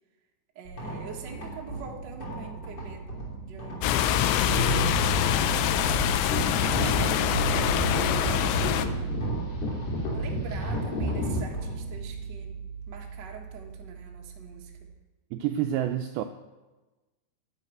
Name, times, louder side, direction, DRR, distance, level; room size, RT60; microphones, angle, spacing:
voice 1, 0.5-3.1 3.5-5.0 5.4-8.9 10.1-12.6 12.9-14.9, right 5 dB, 65° right, 0 dB, 1.1 m, -44 dB
sound 1, 0.6-14.9, right 4 dB, 30° left, 2.8 m, -35 dB
sound 2, 3.8-8.9, left 10 dB, 85° left, 2.9 m, -25 dB
sound 3, 6.3-11.4, equal, 50° left, 3.9 m, -30 dB
voice 2, 15.3-16.2, right 11 dB, 85° right, 6 dB, 2.2 m, -28 dB
11.0 x 8.9 x 8.8 m, 1.1 s
omnidirectional pair, 5.0 m